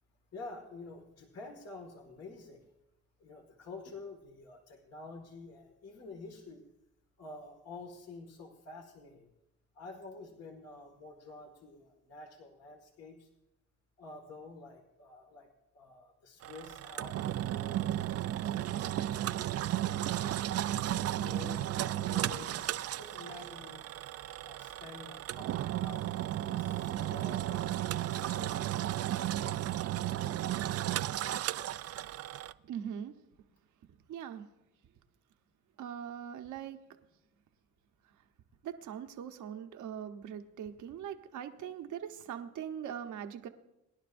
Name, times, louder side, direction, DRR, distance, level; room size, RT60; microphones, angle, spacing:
voice 1, 0.3-2.7 3.2-6.6 7.2-9.3 9.7-13.3 14.0-15.5 15.7-17.8 18.4-19.1 20.1-20.4 21.0-22.6 23.0-23.8 24.4-26.1 26.5-27.7 28.1-28.6 32.0-32.1, left 3 dB, 55° left, 2 dB, 2.0 m, -49 dB
Engine, 16.4-32.5, right 13 dB, 55° right, 0.4 m, -34 dB
voice 2, 32.6-33.1 34.1-34.5 35.8-36.8 38.6-43.5, right 9 dB, 75° right, 7 dB, 1.1 m, -41 dB
22.0 x 11.0 x 2.6 m, 0.88 s
cardioid pair, 90°, 30 cm